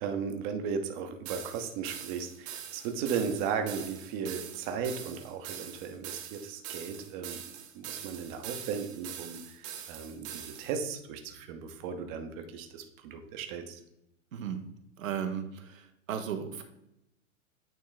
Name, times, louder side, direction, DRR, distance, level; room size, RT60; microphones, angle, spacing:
voice 1, 0.0-7.4 7.7-13.8, right 6 dB, 40° right, 6 dB, 0.9 m, -36 dB
sound 1, 1.3-10.8, right 9 dB, 55° right, 1.2 m, -43 dB
voice 2, 14.3-14.6 15.0-16.6, right 8 dB, 80° right, 5 dB, 1.0 m, -35 dB
9.1 x 3.1 x 3.9 m, 0.83 s
hypercardioid pair, 120°, 39 cm